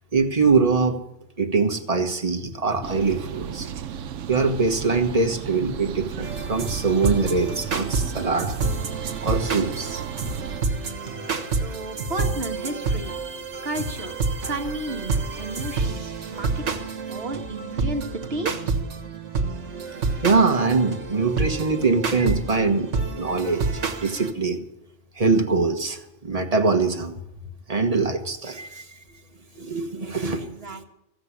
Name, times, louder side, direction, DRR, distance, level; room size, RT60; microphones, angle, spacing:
voice 1, 0.1-1.0 1.4-3.7 4.3-8.6 9.2-10.0 20.2-24.6 25.2-27.1 27.7-28.8 29.5-30.5, right 4 dB, 30° right, 5 dB, 1.4 m, -23 dB
sound 1, 2.8-10.6, right 8 dB, 90° right, 1.1 m, -34 dB
sound 2, 6.2-24.3, right 4 dB, 70° right, 1.6 m, -29 dB
voice 2, 11.6-13.2 13.6-14.2 14.4-18.6 30.0-30.8, right 2 dB, 55° right, 4 dB, 1.6 m, -33 dB
15.5 x 7.7 x 9.8 m, 0.86 s
omnidirectional pair, 1.3 m